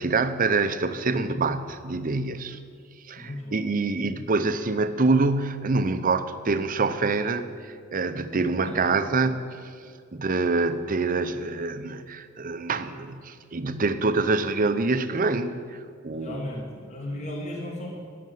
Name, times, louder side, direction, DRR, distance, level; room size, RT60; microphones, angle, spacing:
voice 1, 0.0-2.6 3.1-9.7 10.1-15.6 16.0-16.5, right 3 dB, 40° right, 11 dB, 0.6 m, -26 dB
voice 2, 3.2-3.7 8.7-8.9 16.1-18.0, left 1 dB, 35° left, -1 dB, 1.7 m, -36 dB
13.0 x 6.8 x 9.3 m, 2.2 s
head